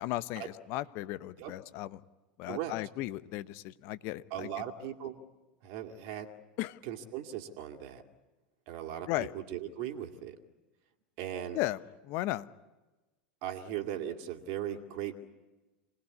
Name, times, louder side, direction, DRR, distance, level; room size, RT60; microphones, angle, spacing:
voice 1, 0.0-2.0 2.4-4.5 6.6-6.8 9.1-9.3 11.5-12.5, left 16 dB, 55° left, 15 dB, 0.9 m, -35 dB
voice 2, 2.4-2.7 4.3-5.2 5.6-6.3 6.8-8.0 8.7-10.4 11.2-11.6 13.4-15.1, right 10 dB, 55° right, 4 dB, 2.3 m, -38 dB
27.0 x 19.0 x 9.5 m, 1.1 s
hypercardioid pair, 85°, 5 cm